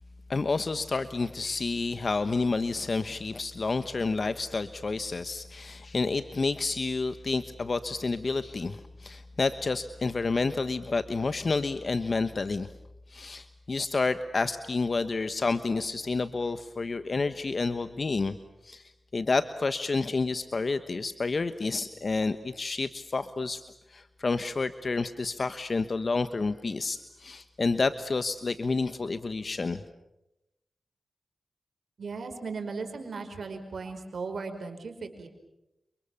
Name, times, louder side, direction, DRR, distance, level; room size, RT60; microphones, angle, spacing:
voice 1, 0.3-12.7 13.1-18.4 18.6-23.6 23.9-29.8, left 3 dB, 55° left, 11 dB, 1.2 m, -29 dB
voice 2, 32.0-35.3, right 4 dB, 75° right, 6 dB, 5.1 m, -37 dB
29.5 x 28.0 x 7.2 m, 0.91 s
cardioid pair, 55°, 0 cm